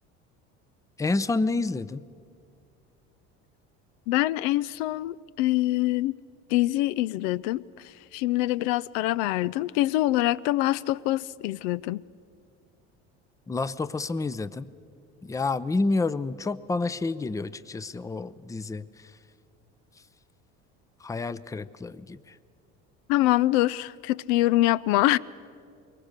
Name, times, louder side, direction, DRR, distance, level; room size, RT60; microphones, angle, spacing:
voice 1, 1.0-2.0 13.5-14.7 15.2-19.1 21.0-22.4, left 3 dB, 10° left, 0.5 m, -29 dB
voice 2, 4.1-6.2 6.5-12.0 23.1-25.2, left 16 dB, 75° left, 0.5 m, -25 dB
22.0 x 19.5 x 6.6 m
hypercardioid pair, 80°, 33 cm